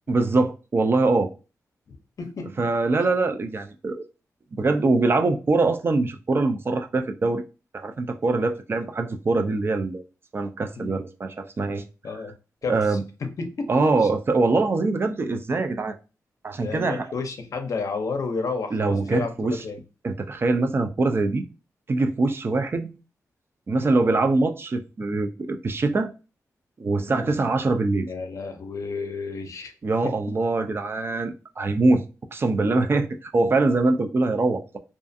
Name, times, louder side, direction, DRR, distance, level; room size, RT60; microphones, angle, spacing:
voice 1, 0.1-1.3 2.6-4.0 4.6-7.4 7.7-10.0 10.3-11.8 12.7-13.0 13.7-16.0 16.4-17.1 18.7-19.6 20.0-21.4 21.9-23.0 23.7-26.1 26.8-28.1 29.8-32.0 32.3-34.8, right 3 dB, 40° right, 0.3 m, -23 dB
voice 2, 1.9-2.7 10.8-11.0 12.0-12.3 12.6-14.1 16.6-19.8 27.1-27.3 28.1-29.7 30.0-30.1, left 4 dB, 65° left, 0.5 m, -32 dB
2.4 x 2.3 x 2.5 m
wide cardioid pair, 95°, 6 cm